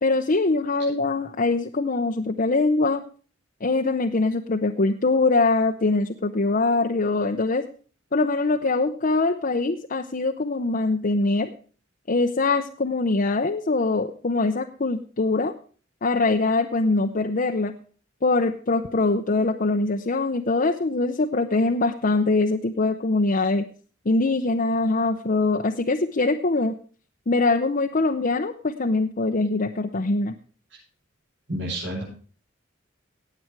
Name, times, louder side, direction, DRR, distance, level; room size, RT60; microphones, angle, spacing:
voice 1, 0.0-3.0 3.6-7.6 8.1-11.5 12.1-15.5 16.0-17.7 18.2-23.7 24.0-26.8 27.3-30.3, left 3 dB, 45° left, 4 dB, 0.7 m, -23 dB
voice 2, 31.5-32.0, right 1 dB, 70° right, -7 dB, 6.3 m, -29 dB
18.0 x 7.8 x 4.6 m, 0.42 s
head